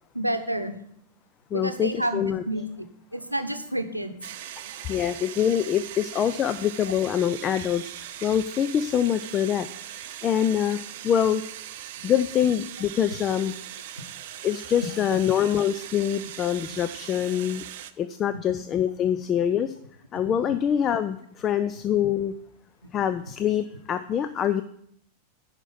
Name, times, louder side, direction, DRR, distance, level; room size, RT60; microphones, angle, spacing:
voice 1, 0.1-0.8 1.5-2.7 3.1-4.2, right 1 dB, 85° right, 8 dB, 0.8 m, -29 dB
voice 2, 1.5-2.4 4.8-10.8 11.0-11.4 12.0-13.5 14.4-17.6 18.0-19.7 20.1-22.3 22.9-24.6, left 9 dB, 30° left, 11 dB, 0.4 m, -25 dB
sound 1, 4.2-17.9, right 12 dB, 50° right, 0.5 m, -40 dB
11.0 x 5.2 x 5.8 m, 0.68 s
figure-of-eight pair, 90°, 0 cm